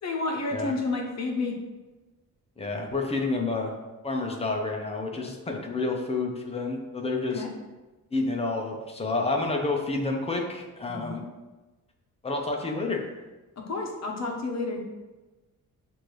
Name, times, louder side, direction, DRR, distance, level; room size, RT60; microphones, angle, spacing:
voice 1, 0.0-1.5 7.3-7.5 10.9-11.2 13.6-14.8, left 3 dB, 50° left, 1 dB, 0.7 m, -30 dB
voice 2, 2.6-3.7 4.0-7.4 8.1-11.2 12.2-13.1, left 3 dB, 20° left, 1 dB, 0.5 m, -29 dB
6.3 x 2.6 x 3.0 m, 1.2 s
wide cardioid pair, 160°, 34 cm